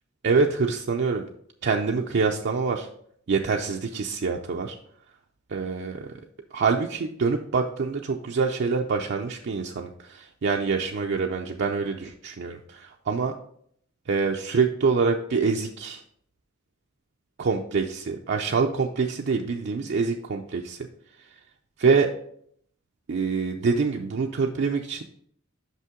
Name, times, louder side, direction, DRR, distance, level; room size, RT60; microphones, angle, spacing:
voice 1, 0.2-1.2 1.6-2.9 3.3-4.8 5.5-6.1 6.5-13.3 14.1-16.0 17.4-20.8 21.8-22.1 23.1-25.0, right 4 dB, 60° right, 2 dB, 0.5 m, -25 dB
5.8 x 5.5 x 3.7 m, 0.66 s
head